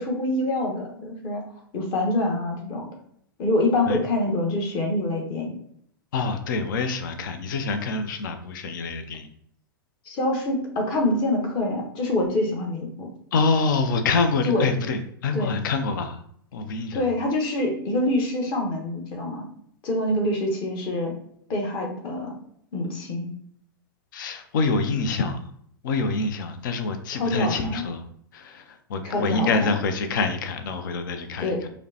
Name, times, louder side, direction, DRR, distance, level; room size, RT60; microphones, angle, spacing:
voice 1, 0.0-2.9 3.4-5.5 10.0-13.1 14.4-14.7 15.3-15.5 16.9-19.4 19.8-21.1 21.5-22.3 22.7-23.3 27.1-27.8 29.0-29.7 31.4-31.6, left 1 dB, 40° left, 1 dB, 1.1 m, -26 dB
voice 2, 6.1-9.3 13.3-16.2 16.5-17.1 24.1-25.4 25.8-28.0 28.3-31.7, left 4 dB, 60° left, 8 dB, 0.5 m, -26 dB
4.9 x 2.2 x 2.8 m, 0.66 s
hypercardioid pair, 100°, 12 cm